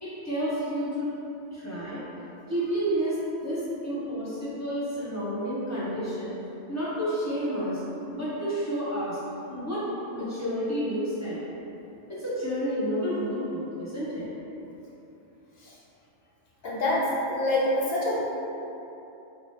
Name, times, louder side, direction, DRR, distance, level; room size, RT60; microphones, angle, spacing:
voice 1, 0.0-1.1 1.5-2.0 2.5-3.2 3.4-6.3 6.7-7.8 8.1-9.2 9.5-9.8 10.1-11.4 12.1-14.3, equal, 15° left, -10 dB, 0.8 m, -30 dB
voice 2, 16.6-18.3, left 1 dB, 60° left, -6 dB, 0.8 m, -26 dB
4.3 x 2.1 x 3.2 m, 3.0 s
omnidirectional pair, 1.2 m